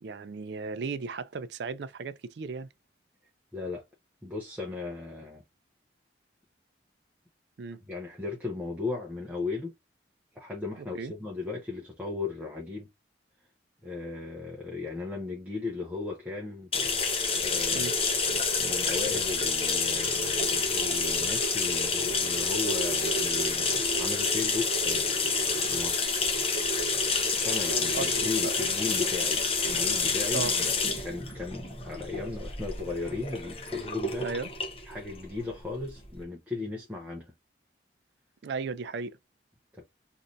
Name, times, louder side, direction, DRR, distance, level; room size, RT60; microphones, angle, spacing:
voice 1, 0.0-2.7 7.6-7.8 10.9-11.1 17.7-17.9 27.9-28.1 28.4-28.5 30.3-30.5 34.2-34.5 38.4-39.2, right 4 dB, 65° right, 0.4 m, -35 dB
voice 2, 3.5-3.8 4.2-5.4 7.9-9.7 10.3-12.9 13.8-16.7 17.3-23.7 24.0-26.1 27.3-30.7 31.0-34.3 34.8-37.3 39.7-39.8, left 3 dB, 10° right, 0.7 m, -36 dB
sound 1, 16.7-36.1, left 4 dB, 30° left, 0.7 m, -28 dB
3.2 x 2.6 x 2.6 m
head